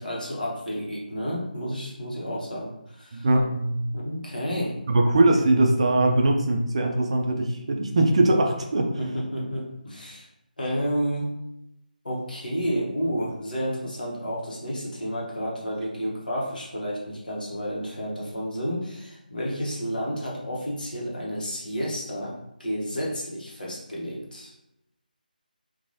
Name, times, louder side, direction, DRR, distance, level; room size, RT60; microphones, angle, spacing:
voice 1, 0.0-3.3 3.9-4.7 9.0-10.3 10.6-11.3 12.0-24.5, equal, 65° left, -4 dB, 0.9 m, -31 dB
voice 2, 3.1-3.9 4.9-8.9, right 2 dB, 40° right, 2 dB, 0.3 m, -21 dB
2.9 x 2.2 x 2.6 m, 0.84 s
figure-of-eight pair, 155°, 5 cm